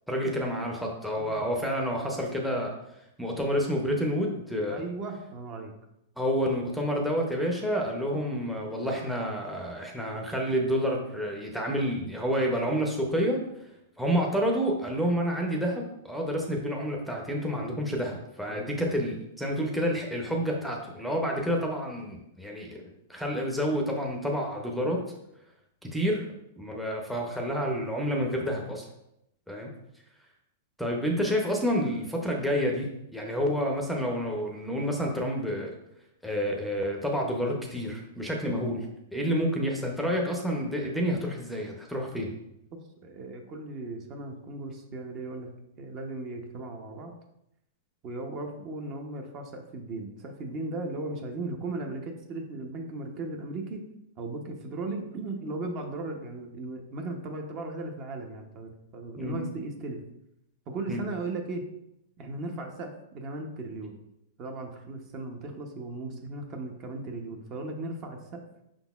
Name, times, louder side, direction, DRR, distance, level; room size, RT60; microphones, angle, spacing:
voice 1, 0.1-2.7 3.2-4.8 6.2-13.4 14.0-25.0 25.8-26.3 26.6-28.8 29.5-29.7 30.8-35.7 36.2-38.9 39.1-42.3 59.2-59.4 60.9-61.0, equal, ahead, 0 dB, 0.6 m, -29 dB
voice 2, 4.7-5.7 18.5-18.7 43.0-45.5 45.8-47.1 48.0-53.8 54.2-60.0 60.7-61.6 62.2-64.0 64.4-68.4, right 2 dB, 35° right, 4 dB, 0.7 m, -37 dB
5.2 x 3.9 x 2.3 m, 0.82 s
hypercardioid pair, 130°, 0 cm